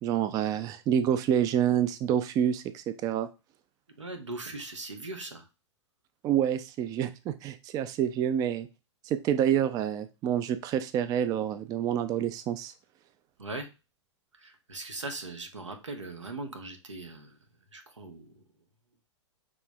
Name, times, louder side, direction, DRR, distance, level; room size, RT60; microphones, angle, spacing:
voice 1, 0.0-3.3 6.2-8.7 9.0-12.7, right 9 dB, 25° right, 12 dB, 0.4 m, -27 dB
voice 2, 4.0-5.4 13.4-13.7 14.4-17.3 17.7-18.3, right 2 dB, 90° right, 5 dB, 1.0 m, -39 dB
6.0 x 3.2 x 2.3 m, 0.28 s
hypercardioid pair, 110°, 15 cm